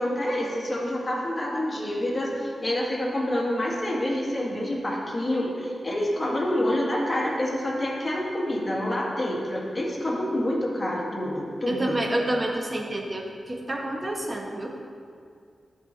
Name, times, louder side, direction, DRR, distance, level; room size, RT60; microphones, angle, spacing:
voice 1, 0.0-12.0, left 1 dB, 30° left, -3 dB, 2.0 m, -27 dB
voice 2, 11.7-14.7, right 1 dB, 30° right, 1 dB, 1.2 m, -28 dB
13.5 x 4.9 x 4.0 m, 2.3 s
wide cardioid pair, 95°, 0 cm